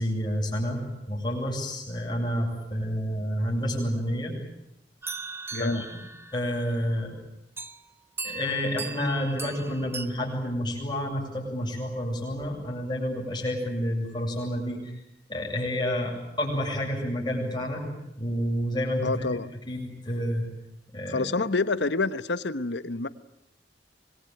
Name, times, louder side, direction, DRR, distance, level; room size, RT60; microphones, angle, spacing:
voice 1, 0.0-4.3 5.6-5.9 6.3-7.1 8.2-14.8 15.3-17.9 18.2-19.3 19.7-20.4 20.9-21.3, equal, 25° left, -1 dB, 7.7 m, -29 dB
sound 1, 5.0-6.7 7.6-7.8 8.2-10.1, right 4 dB, 15° right, 1.2 m, -38 dB
voice 2, 5.5-5.9 19.0-19.5 21.0-23.1, left 3 dB, 75° left, 13 dB, 1.1 m, -27 dB
25.5 x 22.0 x 9.2 m, 0.85 s
head